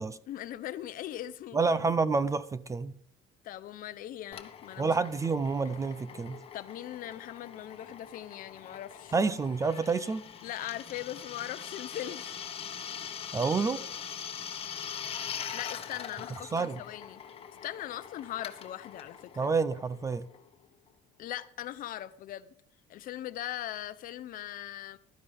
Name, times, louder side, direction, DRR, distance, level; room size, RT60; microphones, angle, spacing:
voice 1, 0.3-1.7 3.4-4.9 6.5-9.1 10.4-12.4 15.5-17.2 17.6-19.5 21.2-22.5 22.9-25.0, left 13 dB, 50° left, 0.8 m, -40 dB
voice 2, 1.5-2.9 4.8-6.4 9.1-10.2 13.3-13.8 16.5-16.8 19.4-20.2, right 4 dB, 15° right, 0.4 m, -28 dB
Drill, 4.3-20.6, left 8 dB, 35° left, 1.3 m, -43 dB
15.5 x 12.5 x 3.5 m
cardioid pair, 165°, 18 cm